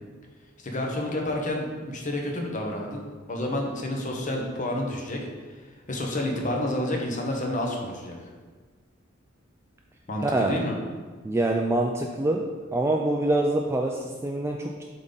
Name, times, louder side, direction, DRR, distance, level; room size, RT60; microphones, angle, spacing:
voice 1, 0.6-5.2 5.9-8.2 10.1-10.8, left 1 dB, 40° left, 1 dB, 1.0 m, -29 dB
voice 2, 10.2-10.6 11.2-12.4 12.7-14.8, right 2 dB, 15° right, 1 dB, 0.3 m, -25 dB
7.3 x 3.7 x 3.9 m, 1.5 s
head